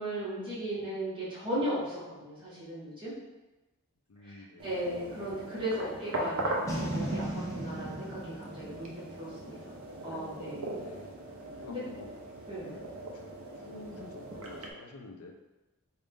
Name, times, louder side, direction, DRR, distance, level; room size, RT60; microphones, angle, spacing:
voice 1, 0.0-3.1 4.2-9.6 10.0-10.8 11.7-11.9 12.5-12.8, right 1 dB, 25° right, -10 dB, 1.3 m, -37 dB
voice 2, 4.1-4.6 10.7-11.2 11.6-12.1 12.7-12.9 13.1-13.3 13.6-15.3, left 2 dB, 85° left, 4 dB, 0.4 m, -49 dB
sound 1, 4.6-14.7, right 1 dB, 80° right, 0.6 m, -39 dB
Boom, 6.7-10.0, right 1 dB, 15° left, 0.7 m, -37 dB
3.8 x 2.4 x 3.6 m, 1.1 s
head